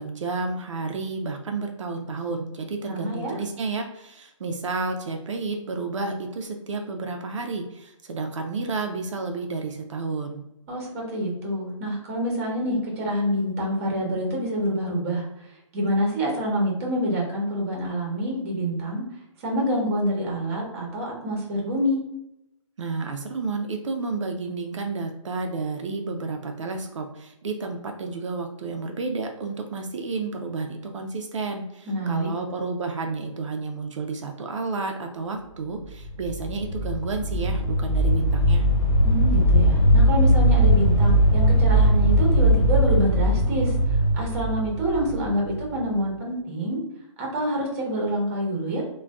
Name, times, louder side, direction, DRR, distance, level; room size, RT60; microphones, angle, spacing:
voice 1, 0.0-10.4 22.8-38.6, right 3 dB, 65° right, 3 dB, 0.5 m, -31 dB
voice 2, 2.9-3.4 10.7-15.2 15.7-19.0 19.4-22.0 31.9-32.3 39.0-43.8 44.1-46.8 47.2-48.8, equal, 25° right, -1 dB, 0.8 m, -27 dB
sound 1, 36.0-45.8, equal, 55° left, 1.2 m, -20 dB
2.5 x 2.2 x 3.3 m, 0.84 s
hypercardioid pair, 155°, 17 cm